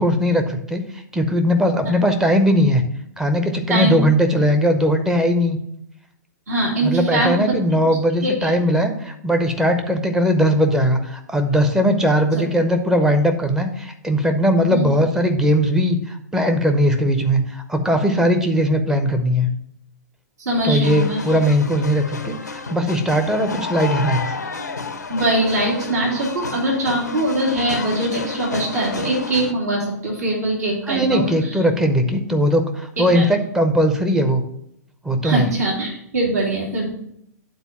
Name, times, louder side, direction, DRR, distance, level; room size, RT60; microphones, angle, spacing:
voice 1, 0.0-2.8 3.2-5.6 6.8-19.5 20.6-24.3 30.9-34.4 35.0-35.5, equal, 5° right, 5 dB, 0.8 m, -19 dB
voice 2, 6.5-7.5 7.8-8.5 12.3-12.4 14.7-14.8 20.4-21.2 25.1-31.6 33.0-33.3 35.2-36.9, right 1 dB, 65° right, -3 dB, 2.8 m, -22 dB
sound 1, 20.8-29.5, left 4 dB, 80° left, 0.7 m, -30 dB
9.3 x 4.1 x 5.8 m, 0.73 s
figure-of-eight pair, 110°, 9 cm